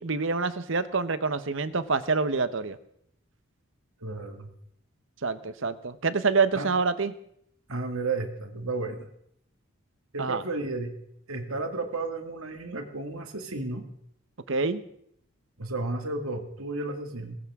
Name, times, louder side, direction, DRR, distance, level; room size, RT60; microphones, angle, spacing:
voice 1, 0.0-2.8 5.2-7.1 10.2-10.4 14.5-14.8, right 4 dB, 60° right, 13 dB, 0.9 m, -26 dB
voice 2, 4.0-4.5 6.5-6.7 7.7-9.1 10.1-10.9 11.3-13.8 15.6-17.3, right 3 dB, 75° right, 5 dB, 2.1 m, -33 dB
21.0 x 17.5 x 3.6 m, 0.71 s
head